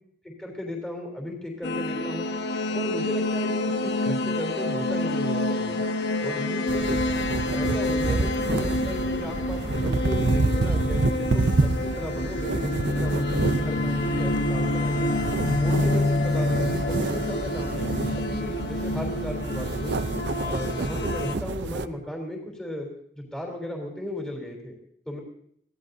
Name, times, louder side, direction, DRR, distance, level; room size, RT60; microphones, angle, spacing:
voice 1, 0.2-2.3 2.7-5.8 6.2-6.9 7.5-15.1 15.6-17.8 18.2-20.0 20.4-22.9 23.1-24.7 25.0-25.2, left 1 dB, 5° left, 0 dB, 3.4 m, -35 dB
sound 1, 1.6-21.3, left 2 dB, 65° left, 1.1 m, -28 dB
sound 2, 6.7-21.9, right 3 dB, 70° right, 0.6 m, -28 dB
24.5 x 17.0 x 2.7 m, 0.67 s
head